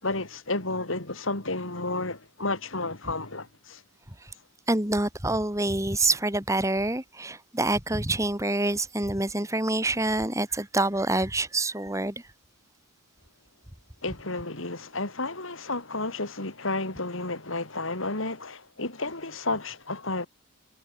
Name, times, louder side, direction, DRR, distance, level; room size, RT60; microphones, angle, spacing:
voice 1, 0.0-3.8 14.0-20.3, left 2 dB, 70° left, 3.8 m, -31 dB
voice 2, 4.7-12.2, right 2 dB, 15° right, 2.5 m, -26 dB
head